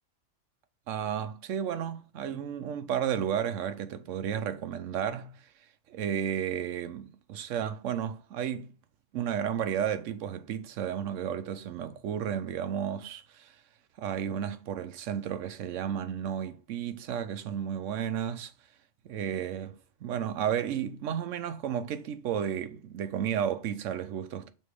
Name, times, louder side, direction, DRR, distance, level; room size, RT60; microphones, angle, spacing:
voice 1, 0.9-5.5 5.9-8.7 9.1-13.6 14.0-18.5 19.0-19.8 20.0-24.5, right 9 dB, 85° right, 1.0 m, -33 dB
6.5 x 3.2 x 4.8 m
omnidirectional pair, 1.3 m